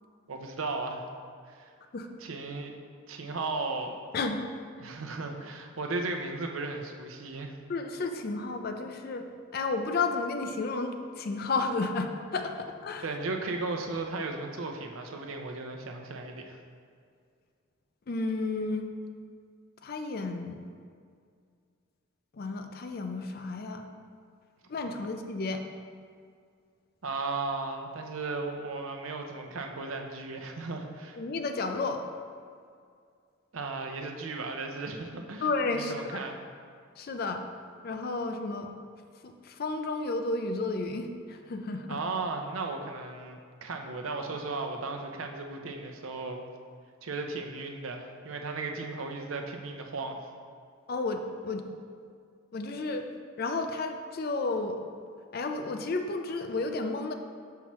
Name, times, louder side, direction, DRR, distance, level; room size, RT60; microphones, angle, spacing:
voice 1, 0.3-1.0 1.5-1.7 2.2-2.7 3.1-4.0 4.8-7.5 13.0-16.6 27.0-31.2 33.5-35.5 35.7-36.4 41.9-46.4 47.0-50.2, right 3 dB, 85° right, 3 dB, 0.6 m, -35 dB
voice 2, 7.7-9.3 9.5-13.1 18.1-18.9 19.8-20.7 22.3-23.9 24.7-25.6 31.2-32.0 35.4-36.2 37.0-37.5 37.8-38.7 39.2-42.0 50.9-51.7 52.5-53.1 53.4-54.8 55.3-57.1, left 3 dB, 50° left, 6 dB, 0.4 m, -32 dB
5.9 x 5.7 x 3.1 m, 2.2 s
head